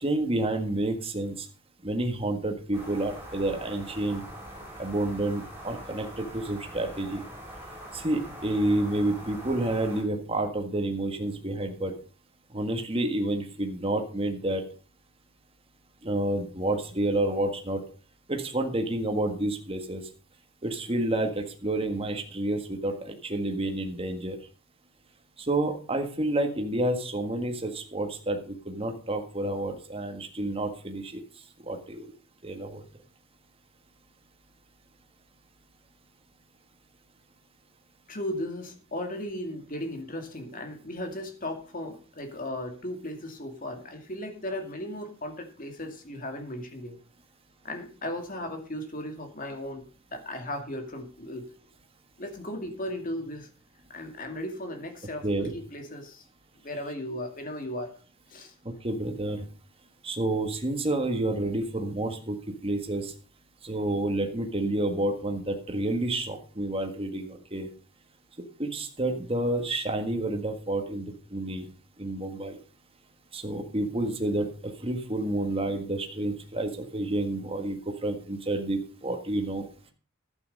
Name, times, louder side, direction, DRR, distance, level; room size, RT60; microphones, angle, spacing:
voice 1, 0.0-1.5 1.8-4.2 4.8-7.2 7.9-11.9 12.5-14.6 16.0-17.8 18.3-20.0 20.6-24.4 25.5-31.2 31.6-32.1 32.4-32.8 55.2-55.5 58.6-59.4 60.0-62.4 62.6-63.1 63.6-67.7 68.6-71.7 72.0-72.6 73.3-74.5 74.8-79.7, right 1 dB, 25° right, 4 dB, 1.6 m, -29 dB
sound 1, 2.7-10.0, equal, 10° right, 5.2 m, -43 dB
voice 2, 38.1-47.0 47.6-51.5 52.2-53.5 53.9-56.3 56.6-57.9 58.3-58.5, left 1 dB, 40° left, 5 dB, 2.3 m, -36 dB
11.5 x 9.0 x 5.3 m, 0.38 s
head